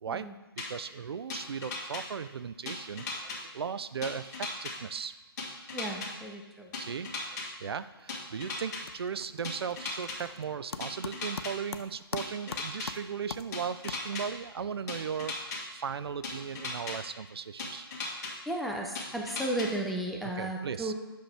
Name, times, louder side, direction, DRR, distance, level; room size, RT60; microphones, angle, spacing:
voice 1, 0.0-5.1 6.8-7.1 7.6-17.9 20.2-20.9, right 7 dB, 75° right, 14 dB, 0.4 m, -37 dB
sound 1, 0.6-0.7 1.3-2.0 2.7-3.4 4.0-4.7 5.4-6.1 6.7-7.5 8.1-8.8 9.4-10.2 10.8-11.5 12.2-12.9 13.5-14.2 14.9-15.6 16.2-17.0 17.6-18.3 19.0-19.7, left 4 dB, 45° left, 1.6 m, -36 dB
voice 2, 5.7-6.7 18.5-20.9, right 1 dB, ahead, 0 dB, 0.4 m, -34 dB
sound 2, 8.0-8.4 8.6-14.5, left 5 dB, 90° left, 0.5 m, -43 dB
8.0 x 5.8 x 3.3 m, 1.1 s
hypercardioid pair, 150°, 13 cm